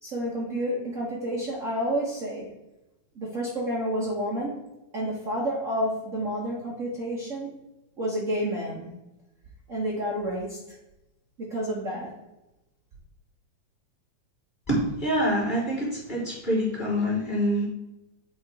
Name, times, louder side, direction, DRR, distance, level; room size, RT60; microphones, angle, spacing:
voice 1, 0.0-2.5 3.2-4.6 4.9-7.5 8.0-8.9 9.7-10.6 11.4-12.1, equal, 70° right, -4 dB, 0.7 m, -30 dB
voice 2, 14.7-17.7, equal, 15° left, -6 dB, 2.7 m, -26 dB
8.8 x 4.0 x 4.7 m, 0.94 s
omnidirectional pair, 3.4 m